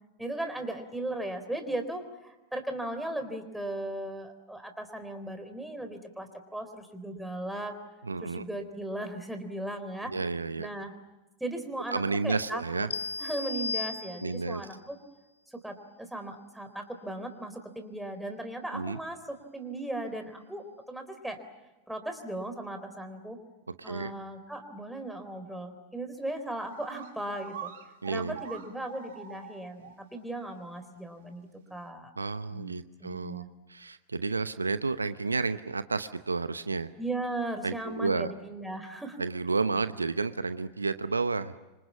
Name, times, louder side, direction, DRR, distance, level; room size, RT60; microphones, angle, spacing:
voice 1, 0.2-7.8 8.2-10.1 10.6-10.9 11.4-12.9 13.2-15.0 15.5-21.4 21.9-23.4 23.8-27.7 28.1-32.1 32.5-33.5 37.0-39.2, right 1 dB, 5° right, 7 dB, 3.9 m, -37 dB
voice 2, 8.0-8.4 10.0-10.7 11.9-12.9 14.2-14.6 18.7-19.0 23.8-24.1 28.0-28.4 32.2-33.4 33.7-36.9 37.6-38.3 39.2-41.5, right 4 dB, 80° right, 12 dB, 0.9 m, -31 dB
sound 1, 12.9-14.6, left 4 dB, 70° left, 1.0 m, -35 dB
sound 2, 26.3-26.4 26.7-29.9 30.3-30.4 31.2-31.3, right 9 dB, 55° right, 2.8 m, -44 dB
26.5 x 26.5 x 7.3 m, 1.1 s
figure-of-eight pair, 90°, 0 cm